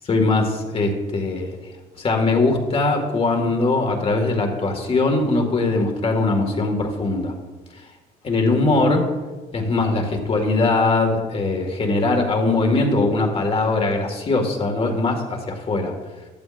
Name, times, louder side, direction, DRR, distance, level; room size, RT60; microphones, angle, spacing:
voice 1, 0.1-1.6 2.0-7.3 8.2-9.1 9.5-15.9, left 3 dB, 35° left, 3 dB, 2.1 m, -21 dB
14.5 x 11.5 x 2.6 m, 1.3 s
cardioid pair, 110°, 17 cm